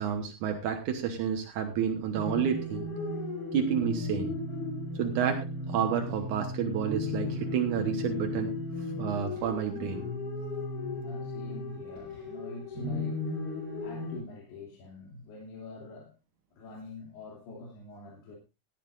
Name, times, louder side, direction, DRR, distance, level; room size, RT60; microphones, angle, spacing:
voice 1, 0.0-2.9 3.5-4.3 5.0-8.6 9.0-10.0, right 8 dB, 70° right, 1.9 m, -30 dB
sound 1, 2.2-14.2, left 2 dB, 25° left, 6.3 m, -35 dB
voice 2, 11.0-13.4 13.8-16.1 16.5-18.4, left 2 dB, 65° left, 4.7 m, -45 dB
17.5 x 12.0 x 2.5 m
omnidirectional pair, 5.1 m